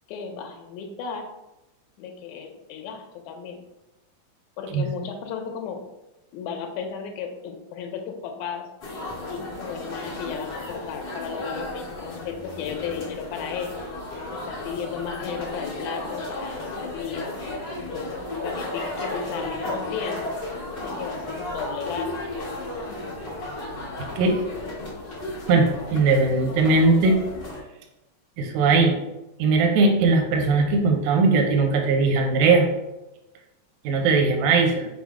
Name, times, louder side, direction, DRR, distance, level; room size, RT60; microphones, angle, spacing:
voice 1, 0.1-1.3 2.0-3.6 4.6-5.8 6.3-8.7 9.3-13.7 14.3-17.3 17.8-20.4 20.8-22.1, left 6 dB, 75° left, 3 dB, 1.9 m, -34 dB
sound 1, 8.8-27.6, left 2 dB, 55° left, 1.1 m, -34 dB
voice 2, 25.5-27.2 28.4-29.0 29.4-32.7 33.8-34.9, right 3 dB, 75° right, 3 dB, 1.7 m, -19 dB
5.5 x 2.0 x 4.7 m, 0.96 s
omnidirectional pair, 3.8 m